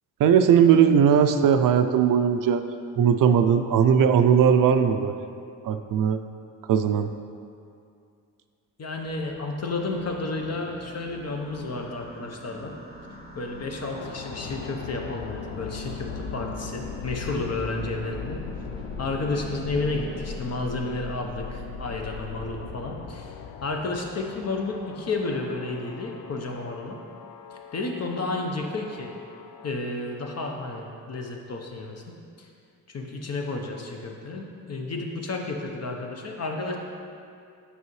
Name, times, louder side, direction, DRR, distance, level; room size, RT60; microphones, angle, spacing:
voice 1, 0.2-2.6 3.0-5.1 5.6-6.2 6.7-7.1, right 8 dB, 65° right, 8 dB, 0.5 m, -19 dB
voice 2, 8.8-12.7 13.3-18.4 19.0-23.3 23.6-27.0 27.7-29.1 29.6-32.0 32.4-32.5 32.9-36.8, left 2 dB, 45° left, 2 dB, 0.9 m, -31 dB
sound 1, 9.0-20.4, right 1 dB, 10° left, 1.7 m, -43 dB
sound 2, 13.9-29.7, left 6 dB, 75° left, 0.5 m, -39 dB
8.2 x 5.5 x 3.2 m, 2.4 s
cardioid pair, 85°, 36 cm